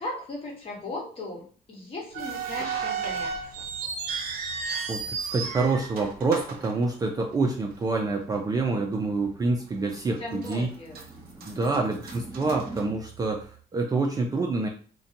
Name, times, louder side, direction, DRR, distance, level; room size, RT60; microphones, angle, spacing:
voice 1, 0.0-3.6 10.2-11.0 11.5-11.9, left 2 dB, 35° left, -2 dB, 1.1 m, -38 dB
sound 1, 2.1-7.5 7.8-7.9 8.6-8.8 9.3-9.4 10.0-10.6 10.9-13.4, right 5 dB, 65° right, 0.6 m, -34 dB
voice 2, 4.9-10.7 11.5-14.7, right 3 dB, 20° right, 1 dB, 0.3 m, -27 dB
sound 2, 7.0-13.0, right 1 dB, 10° left, 1.1 m, -46 dB
2.6 x 2.2 x 2.6 m, 0.42 s
cardioid pair, 110°, 17 cm